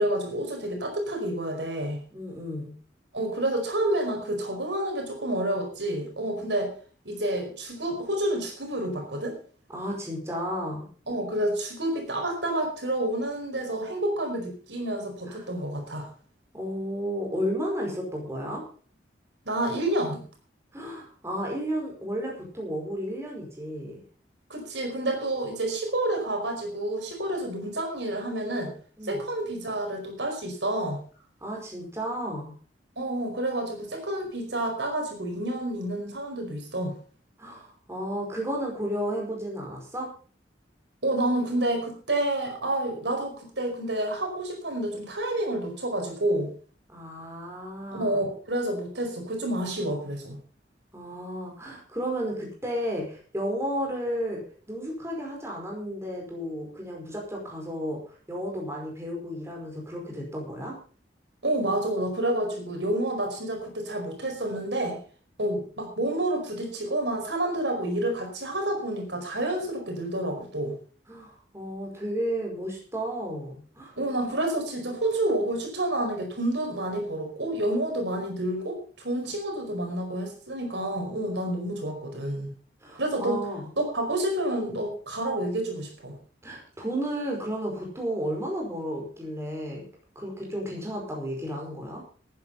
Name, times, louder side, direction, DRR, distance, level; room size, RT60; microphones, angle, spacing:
voice 1, 0.0-2.0 3.1-6.7 7.0-9.4 11.1-16.1 19.4-20.2 24.5-28.7 29.0-31.0 33.0-36.9 41.0-46.5 47.9-50.4 61.4-65.0 65.4-70.7 74.0-82.5 82.9-83.4 83.8-86.1, right 1 dB, 75° right, 3 dB, 4.9 m, -29 dB
voice 2, 2.1-2.7 9.7-10.9 15.3-15.5 16.5-18.6 20.7-24.0 29.0-29.2 31.4-32.5 37.4-40.1 46.9-48.2 50.9-54.4 54.7-58.0 58.3-60.8 71.1-74.0 82.8-83.7 86.4-89.9 90.1-92.0, equal, 15° right, -1 dB, 5.0 m, -33 dB
14.5 x 9.8 x 5.5 m, 0.42 s
head